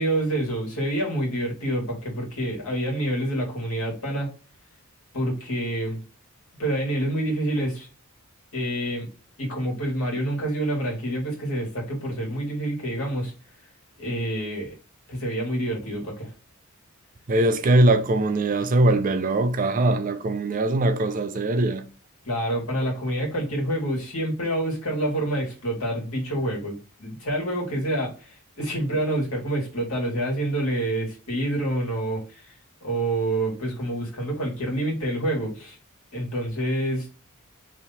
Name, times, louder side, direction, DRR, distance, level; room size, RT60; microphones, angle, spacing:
voice 1, 0.0-4.3 5.1-6.0 6.6-7.9 8.5-9.1 9.4-13.3 14.0-14.7 15.1-16.3 22.3-32.5 32.8-35.8 36.1-37.1, right 1 dB, 70° left, 1.8 m, -27 dB
voice 2, 17.3-21.8, right 2 dB, 35° right, 0.4 m, -21 dB
3.1 x 2.8 x 4.0 m
head